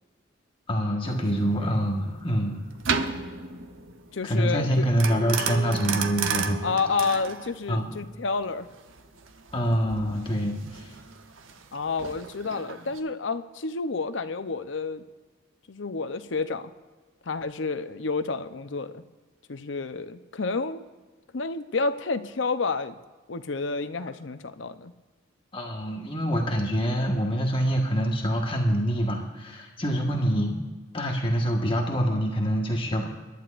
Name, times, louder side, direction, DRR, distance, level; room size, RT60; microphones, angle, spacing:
voice 1, 0.7-2.7 4.2-6.7 7.7-7.9 9.5-10.9 25.5-30.6 30.9-33.1, equal, 25° left, 1 dB, 1.5 m, -25 dB
sound 1, 1.0-13.0, right 5 dB, 85° right, 0.9 m, -34 dB
voice 2, 4.1-4.9 6.6-8.7 11.7-15.0 15.7-16.7 17.3-19.0 19.5-20.9 21.3-22.9 23.3-24.9, left 4 dB, 70° left, 10 dB, 0.7 m, -30 dB
22.5 x 12.0 x 2.5 m, 1.3 s
head